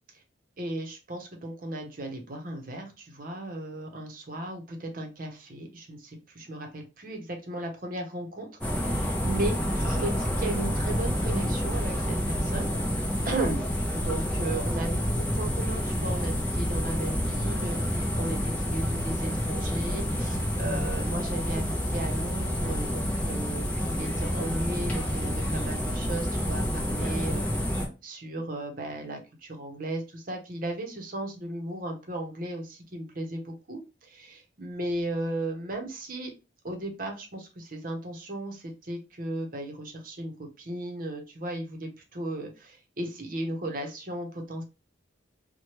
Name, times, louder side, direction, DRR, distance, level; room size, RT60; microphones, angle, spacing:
voice 1, 0.6-12.8 13.2-13.6 13.9-27.4 28.0-36.3 36.6-44.6, right 1 dB, 45° right, 3 dB, 0.8 m, -36 dB
sound 1, 8.6-27.9, equal, 10° left, 0.6 m, -28 dB
2.9 x 2.2 x 3.0 m, 0.29 s
head